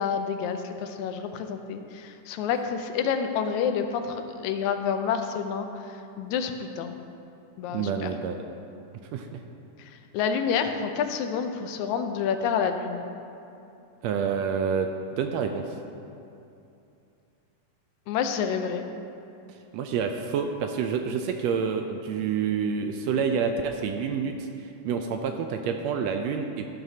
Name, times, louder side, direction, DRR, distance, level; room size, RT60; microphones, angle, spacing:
voice 1, 0.0-7.0 7.6-8.1 9.8-13.1 18.1-18.9, left 7 dB, 80° left, 7 dB, 2.0 m, -29 dB
voice 2, 7.7-8.4 9.1-9.4 14.0-14.9 15.2-15.7 19.5-26.7, right 6 dB, 80° right, 5 dB, 1.6 m, -28 dB
13.0 x 11.5 x 2.8 m, 2.7 s
omnidirectional pair, 3.3 m